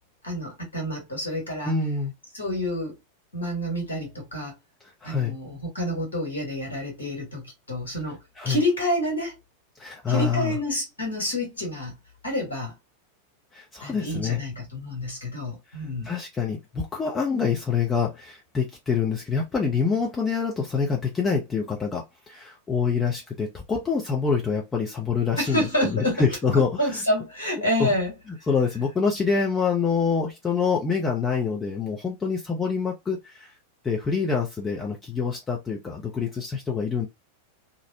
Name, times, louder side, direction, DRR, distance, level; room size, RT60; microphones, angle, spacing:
voice 1, 0.2-1.7 2.3-3.0 3.3-4.5 5.0-8.2 8.4-9.3 10.1-11.9 12.2-12.7 13.8-16.1 25.4-26.3 26.8-28.1, left 1 dB, 70° left, 1.4 m, -28 dB
voice 2, 1.6-2.1 5.0-5.3 8.4-8.6 9.8-10.6 13.5-14.4 16.0-27.0 27.8-27.9 28.5-33.5 33.8-37.1, left 5 dB, 15° left, 0.5 m, -26 dB
2.5 x 2.0 x 2.7 m
figure-of-eight pair, 90°, 0 cm